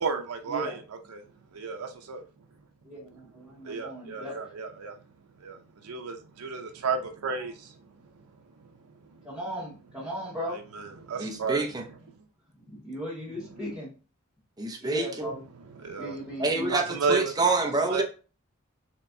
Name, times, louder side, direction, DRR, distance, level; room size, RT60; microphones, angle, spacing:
voice 1, 0.0-0.8 1.1-1.2 1.5-2.2 3.6-4.9 5.4-7.7 9.1-9.3 10.7-11.6 15.8-16.2 16.7-17.3 17.9-18.0, right 5 dB, 85° right, 0.5 m, -32 dB
voice 2, 2.8-4.5 9.2-10.6 12.7-13.9 14.8-15.4 16.0-16.7 17.0-17.1, equal, ahead, 1.7 m, -36 dB
voice 3, 11.2-11.8 14.6-15.3 16.4-18.0, right 3 dB, 20° right, 0.6 m, -27 dB
4.3 x 3.2 x 2.6 m
head